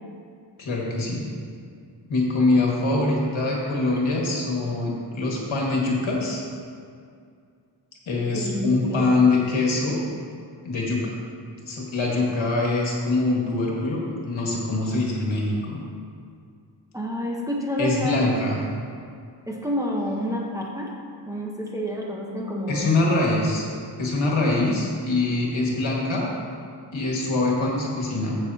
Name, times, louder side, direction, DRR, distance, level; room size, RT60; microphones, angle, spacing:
voice 1, 0.6-1.2 2.1-6.4 8.1-10.0 10.6-11.1 11.7-15.8 17.8-18.7 22.7-23.7 24.0-26.3 26.9-28.4, left 2 dB, 85° left, -3 dB, 2.0 m, -23 dB
voice 2, 8.3-9.0 16.9-18.2 19.5-20.9 21.2-22.9, equal, 5° right, -3 dB, 1.0 m, -28 dB
15.0 x 6.5 x 2.8 m, 2.3 s
wide cardioid pair, 150°, 46 cm